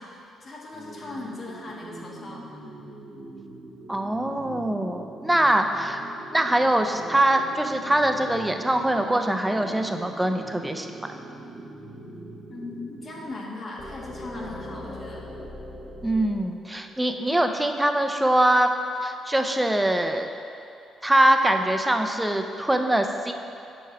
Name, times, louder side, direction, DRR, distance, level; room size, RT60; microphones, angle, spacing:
voice 1, 0.0-2.5 12.5-15.3, left 2 dB, 40° left, -3 dB, 1.3 m, -38 dB
sound 1, 0.7-13.3, right 2 dB, 50° right, 1.1 m, -43 dB
voice 2, 3.9-6.0 6.3-10.9 16.0-18.7 19.0-20.3 21.0-23.3, right 1 dB, 10° right, 5 dB, 0.5 m, -23 dB
sound 2, 13.8-17.7, left 1 dB, 20° left, 0.9 m, -40 dB
8.3 x 3.1 x 5.8 m, 2.7 s
cardioid pair, 90°, 0 cm